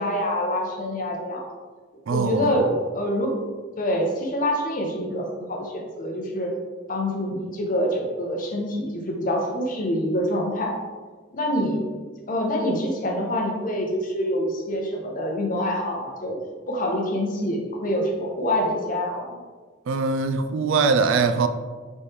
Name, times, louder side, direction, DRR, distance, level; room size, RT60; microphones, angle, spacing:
voice 1, 0.0-1.4 2.1-3.4 3.8-6.5 6.9-10.7 11.3-11.8 12.3-16.4 16.7-19.4, equal, 45° left, 0.7 m, -26 dB
voice 2, 2.1-2.5 19.9-21.5, right 4 dB, 80° right, 0.3 m, -22 dB
4.3 x 3.1 x 3.4 m
head